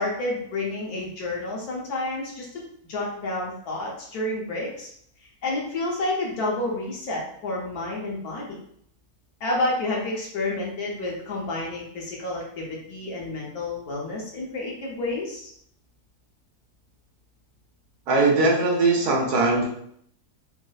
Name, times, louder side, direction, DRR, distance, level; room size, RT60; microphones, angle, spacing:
voice 1, 0.0-2.5 2.9-4.9 5.4-8.6 9.4-15.5, left 2 dB, 70° left, -3 dB, 1.3 m, -29 dB
voice 2, 18.1-19.6, right 3 dB, 75° right, -3 dB, 1.3 m, -20 dB
4.3 x 2.1 x 2.3 m, 0.68 s
omnidirectional pair, 1.7 m